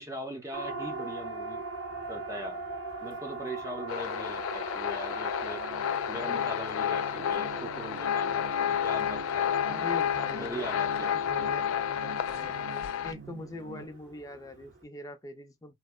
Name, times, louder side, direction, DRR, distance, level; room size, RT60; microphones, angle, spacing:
voice 1, 0.0-1.7 2.1-2.6 3.0-5.6 6.1-9.7 10.3-11.1, equal, 15° right, 0.7 m, -40 dB
Siren, 0.5-14.8, right 3 dB, 60° right, 1.0 m, -42 dB
sound 1, 3.9-13.1, left 9 dB, 90° left, 0.3 m, -31 dB
sound 2, 5.3-13.9, right 4 dB, 75° right, 0.5 m, -45 dB
voice 2, 9.7-15.7, left 2 dB, 15° left, 0.5 m, -43 dB
3.1 x 2.0 x 2.2 m
head